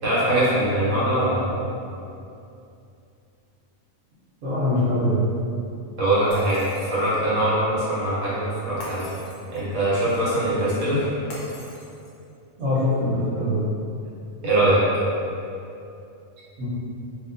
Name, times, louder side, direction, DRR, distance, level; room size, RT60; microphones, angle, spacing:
voice 1, 0.0-1.6 6.0-9.1 9.5-11.1 14.4-14.8, right 1 dB, 65° right, -10 dB, 1.4 m, -22 dB
voice 2, 4.4-5.2 12.6-13.6 16.6-16.7, left 1 dB, 90° right, -11 dB, 1.3 m, -23 dB
Shatter, 6.3-7.2 8.8-9.8 11.3-12.3, left 1 dB, 70° left, 1.0 m, -42 dB
2.9 x 2.8 x 2.5 m, 2.6 s
omnidirectional pair, 1.4 m